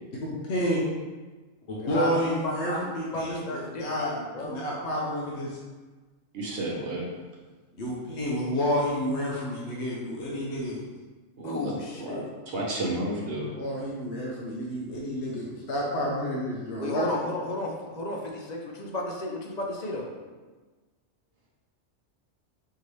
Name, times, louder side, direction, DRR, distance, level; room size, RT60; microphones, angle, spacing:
voice 1, 0.2-0.8 1.7-4.1 4.4-5.6 7.2-7.3 7.8-10.8 13.6-17.1, equal, 65° left, -4 dB, 0.9 m, -30 dB
voice 2, 1.8-4.6 11.4-12.3 16.8-20.1, left 2 dB, 45° left, -1 dB, 0.6 m, -33 dB
voice 3, 6.3-7.0 11.4-11.7 12.0-13.5, right 1 dB, 55° right, -3 dB, 1.0 m, -31 dB
4.5 x 2.9 x 3.1 m, 1.3 s
omnidirectional pair, 1.3 m